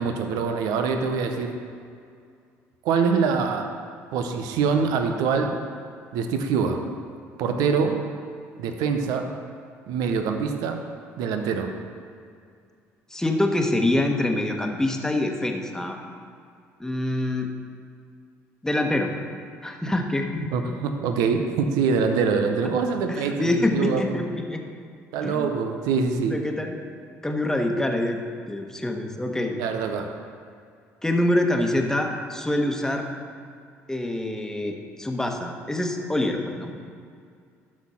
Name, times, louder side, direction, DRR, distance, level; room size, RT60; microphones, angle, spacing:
voice 1, 0.0-1.5 2.8-3.7 4.1-5.5 6.1-6.9 7.4-8.0 8.6-9.3 9.9-10.8 11.2-11.7 20.5-24.2 25.1-26.4 29.6-30.1, right 5 dB, 75° right, 5 dB, 0.8 m, -24 dB
voice 2, 13.1-16.0 16.8-17.5 18.6-19.1 19.6-20.5 23.1-24.6 25.2-25.5 26.3-26.8 27.2-28.2 28.5-29.6 31.0-33.1 33.9-36.7, left 1 dB, 10° left, 3 dB, 1.2 m, -25 dB
12.0 x 4.3 x 5.6 m, 2.3 s
supercardioid pair, 70°, 6 cm